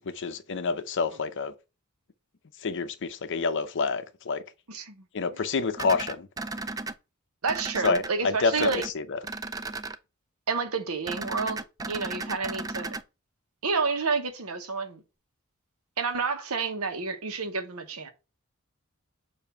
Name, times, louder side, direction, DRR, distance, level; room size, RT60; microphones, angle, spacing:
voice 1, 0.0-1.5 2.6-4.4 5.1-6.3 7.8-9.2, left 4 dB, 60° left, 0.6 m, -28 dB
voice 2, 4.7-5.0 7.4-8.8 10.5-11.6 11.9-12.9 13.6-15.0 16.0-18.1, right 4 dB, 90° right, 1.1 m, -29 dB
sound 1, 5.8-6.9 7.5-8.1 8.6-8.9 9.2-10.0 11.1-13.0, right 3 dB, 15° right, 0.3 m, -35 dB
6.9 x 2.7 x 5.6 m
head